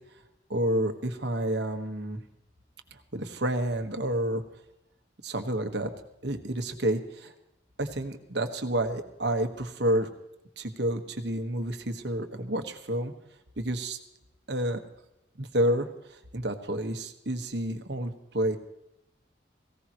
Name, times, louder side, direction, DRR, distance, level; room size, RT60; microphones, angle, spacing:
voice 1, 0.5-2.2 3.1-4.4 5.2-5.9 6.2-7.3 7.8-10.1 10.6-13.1 13.6-14.0 14.5-14.8 15.4-18.6, right 1 dB, 70° right, 6 dB, 1.5 m, -29 dB
18.5 x 17.0 x 3.1 m, 0.86 s
head